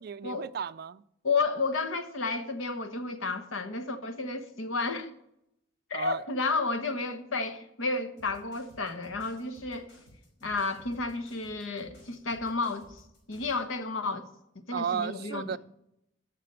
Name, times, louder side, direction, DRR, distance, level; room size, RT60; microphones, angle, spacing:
voice 1, 0.0-1.0 5.9-6.2 14.7-15.6, right 7 dB, 50° right, 0.3 m, -33 dB
voice 2, 1.2-5.1 5.9-9.9 10.4-13.0 13.3-14.2 14.7-15.6, left 3 dB, 85° left, 1.1 m, -31 dB
sound 1, 8.2-13.6, equal, 60° left, 4.6 m, -55 dB
14.5 x 5.9 x 5.6 m
head